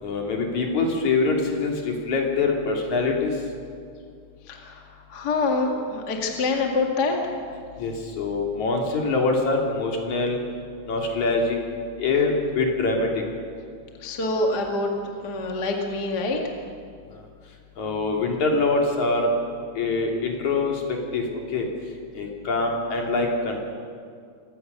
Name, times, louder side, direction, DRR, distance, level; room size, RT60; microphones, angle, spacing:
voice 1, 0.0-3.3 7.8-10.4 10.9-11.6 12.0-13.2 17.8-19.3 19.8-21.2 21.5-21.7 22.1-23.6, left 3 dB, 60° left, 0 dB, 3.9 m, -24 dB
voice 2, 4.5-4.8 5.1-7.3 14.0-14.9 15.2-16.4, left 3 dB, 35° left, 1 dB, 2.1 m, -25 dB
25.5 x 17.5 x 6.8 m, 2.2 s
omnidirectional pair, 3.9 m